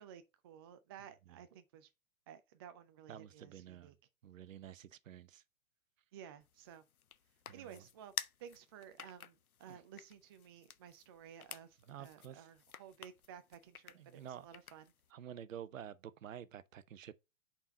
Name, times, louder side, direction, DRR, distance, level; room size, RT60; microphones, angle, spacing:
voice 1, 0.0-1.9 2.3-4.0 6.1-6.8 7.5-8.1 8.4-14.9, right 9 dB, 20° right, 0.3 m, -55 dB
voice 2, 3.1-4.0 4.2-5.4 7.5-7.8 9.7-9.8 11.9-12.5 13.9-14.5 15.1-17.1, right 9 dB, 65° right, 0.7 m, -50 dB
sound 1, 6.4-15.1, left 8 dB, 90° left, 0.6 m, -51 dB
5.4 x 4.3 x 5.8 m
figure-of-eight pair, 105°, 42 cm